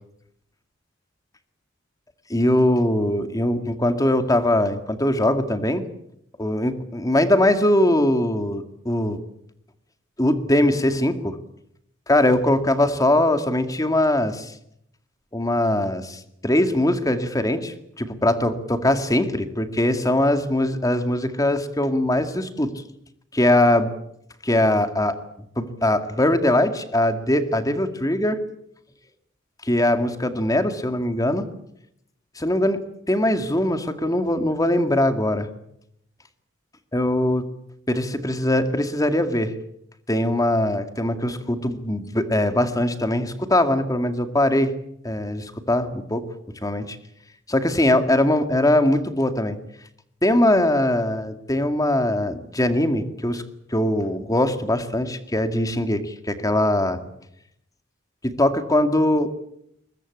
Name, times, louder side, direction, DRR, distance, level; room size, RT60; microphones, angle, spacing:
voice 1, 2.3-5.8 6.4-9.2 10.2-11.4 12.1-14.5 15.3-22.8 23.3-23.9 24.4-25.2 25.6-28.4 29.6-31.5 32.4-35.5 36.9-37.5 37.9-39.5 40.1-44.8 45.0-46.2 46.6-47.0 47.5-49.6 50.2-53.4 53.7-57.0 58.2-59.3, left 1 dB, 20° left, 8 dB, 2.1 m, -21 dB
23.0 x 22.0 x 8.6 m, 0.76 s
head